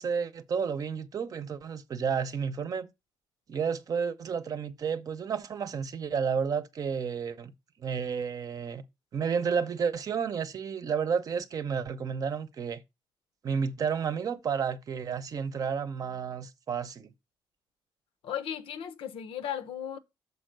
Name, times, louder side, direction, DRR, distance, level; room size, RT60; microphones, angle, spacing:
voice 1, 0.0-2.9 3.5-7.5 7.8-8.8 9.1-12.8 13.4-17.1, right 6 dB, 40° right, 0.7 m, -31 dB
voice 2, 18.2-20.0, left 9 dB, 90° left, 0.9 m, -36 dB
6.9 x 4.6 x 6.6 m
cardioid pair, 150°, 9 cm